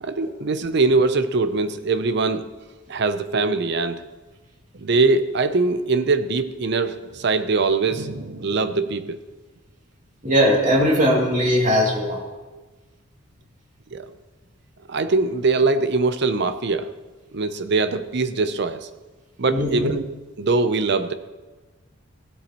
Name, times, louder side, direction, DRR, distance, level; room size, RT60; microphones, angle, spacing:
voice 1, 0.0-2.5 2.9-4.0 4.8-9.2 13.9-14.1 14.9-16.9 17.3-18.9 19.4-20.1 20.4-21.1, right 3 dB, 60° right, 11 dB, 0.7 m, -22 dB
voice 2, 10.2-12.2 19.5-19.9, equal, 40° right, -2 dB, 2.6 m, -19 dB
16.5 x 12.5 x 3.0 m, 1.2 s
head